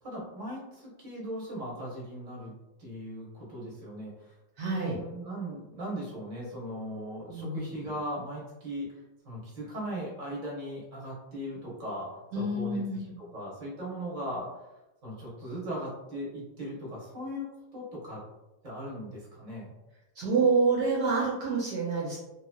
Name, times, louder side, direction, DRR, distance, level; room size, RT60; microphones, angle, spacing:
voice 1, 0.0-2.5 2.8-4.3 4.6-12.8 13.2-14.5 15.0-18.2 18.6-19.7, equal, 30° right, -5 dB, 0.9 m, -38 dB
voice 2, 4.6-5.0 7.3-7.7 12.3-13.2 20.2-22.2, right 4 dB, 70° right, -4 dB, 1.1 m, -27 dB
3.0 x 2.7 x 2.2 m, 0.97 s
omnidirectional pair, 2.1 m